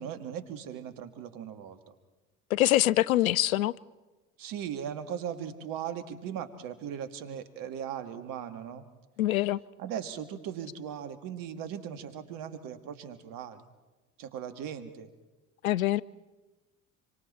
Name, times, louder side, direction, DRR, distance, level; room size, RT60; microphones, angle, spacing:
voice 1, 0.0-1.9 4.4-8.8 9.8-13.6 14.2-15.1 16.0-16.1, right 9 dB, 55° right, 1.9 m, -38 dB
voice 2, 2.5-3.7 9.2-9.6 15.6-16.0, left 15 dB, 80° left, 0.6 m, -24 dB
26.0 x 25.0 x 4.3 m
hypercardioid pair, 70°, 40 cm